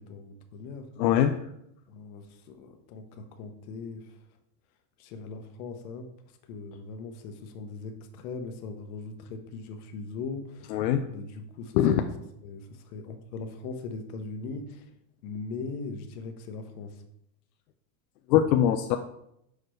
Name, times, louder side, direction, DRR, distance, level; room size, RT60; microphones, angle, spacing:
voice 1, 0.0-0.9 1.9-4.2 5.0-6.1 6.4-10.8 11.0-12.1 12.4-14.9 15.2-17.0, left 4 dB, 60° left, 6 dB, 1.0 m, -40 dB
voice 2, 1.0-1.4 10.7-11.0 11.8-12.0 18.3-19.0, left 10 dB, 85° left, 6 dB, 0.6 m, -22 dB
6.6 x 4.8 x 3.1 m, 0.78 s
supercardioid pair, 150°, 49 cm